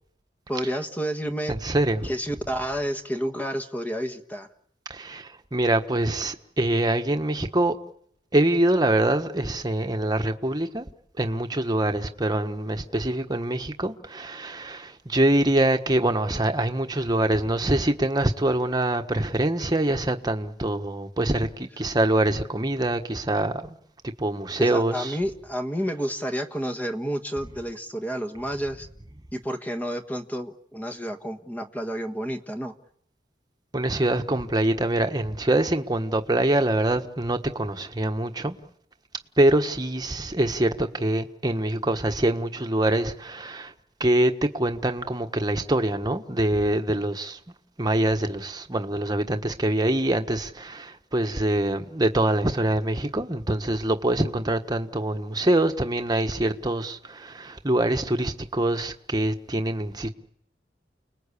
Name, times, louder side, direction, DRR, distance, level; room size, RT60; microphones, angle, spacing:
voice 1, 0.5-1.5 2.0-4.5 24.6-28.9 29.3-32.7, equal, 10° left, 1.4 m, -30 dB
voice 2, 1.5-2.1 4.9-7.7 8.3-10.9 11.2-23.8 24.0-25.2 33.7-38.5 39.4-43.7 44.0-47.4 47.8-60.1, right 1 dB, 25° right, 1.4 m, -24 dB
30.0 x 20.0 x 8.5 m
head